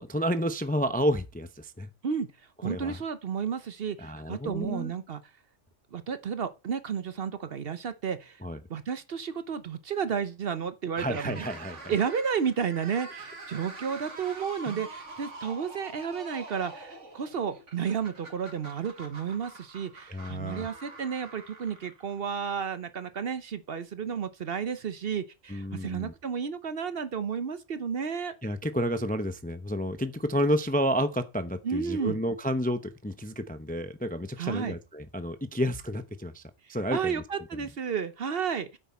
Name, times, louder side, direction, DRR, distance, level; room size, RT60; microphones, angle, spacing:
voice 1, 0.0-1.9 2.6-3.0 4.0-4.9 8.4-8.6 11.0-11.9 14.6-14.8 20.1-20.7 25.5-26.1 28.4-36.4 36.7-37.2, equal, 10° left, 0.5 m, -30 dB
voice 2, 2.6-5.2 5.9-8.4 8.7-11.5 11.9-28.3 31.6-32.2 34.4-34.7 36.9-38.8, right 7 dB, 55° right, 0.9 m, -32 dB
sound 1, 11.1-22.3, right 3 dB, 70° right, 2.5 m, -45 dB
9.4 x 8.2 x 4.2 m
omnidirectional pair, 1.3 m